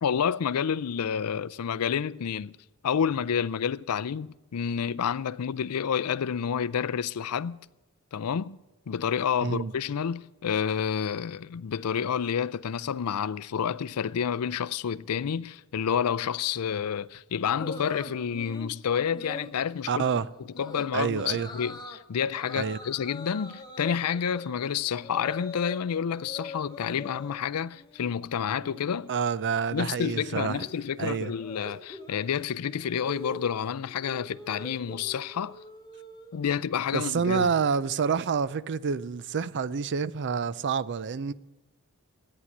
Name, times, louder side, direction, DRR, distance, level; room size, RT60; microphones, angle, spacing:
voice 1, 0.0-2.6 2.8-7.6 8.1-8.6 8.9-20.0 20.6-29.1 29.7-35.6 36.3-37.5, left 7 dB, 80° left, 0.4 m, -29 dB
sound 1, 17.6-18.7 19.1-19.5 19.9-20.2 20.6-20.9 21.2-22.0 22.3-25.8 26.1-27.4 27.7-28.1 28.4-36.6, left 2 dB, 20° left, 1.1 m, -43 dB
voice 2, 19.9-20.3 20.9-21.5 22.5-22.8 29.1-30.7 31.0-31.3 36.9-41.3, right 6 dB, 55° right, 0.5 m, -28 dB
14.0 x 9.7 x 7.2 m
head